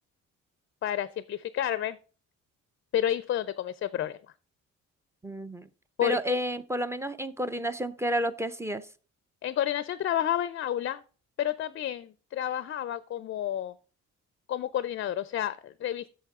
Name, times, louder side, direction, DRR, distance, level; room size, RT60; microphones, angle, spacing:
voice 1, 0.8-2.0 2.9-4.2 6.0-6.4 9.4-11.0 11.4-13.7 14.5-16.1, left 11 dB, 45° left, 16 dB, 0.4 m, -30 dB
voice 2, 5.2-5.7 6.0-8.9, equal, 10° right, 13 dB, 0.5 m, -30 dB
9.0 x 6.5 x 3.6 m, 0.37 s
cardioid pair, 90°, 30 cm